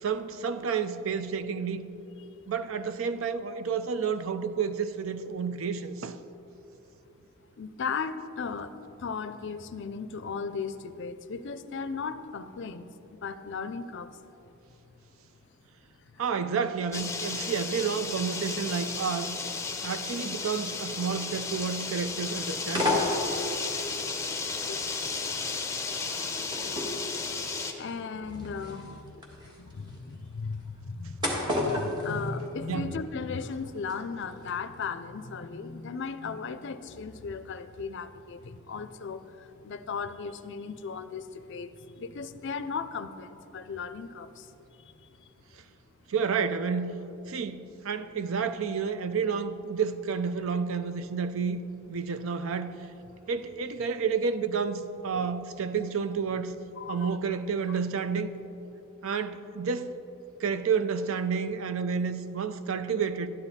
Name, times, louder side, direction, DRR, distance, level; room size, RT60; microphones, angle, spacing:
voice 1, 0.0-1.9 2.5-6.2 16.2-19.3 19.8-23.0 28.8-29.0 32.7-32.9 46.1-46.9 47.3-51.6 51.9-52.7 53.3-56.5 56.9-58.3 59.0-59.9 60.4-63.3, right 6 dB, 70° right, 0.5 m, -30 dB
voice 2, 7.6-14.1 16.1-16.2 23.9-24.0 24.3-25.1 26.3-26.4 27.8-31.2 31.4-45.1 56.8-57.2 57.7-57.8, left 5 dB, 60° left, 0.5 m, -37 dB
sound 1, 16.9-27.7, left 4 dB, 15° left, 0.7 m, -34 dB
sound 2, 20.8-21.6 21.9-22.2 22.6-23.8 24.4-33.1 33.3-34.0 34.3-34.5, left 2 dB, 20° right, 1.5 m, -33 dB
12.0 x 9.8 x 4.2 m
head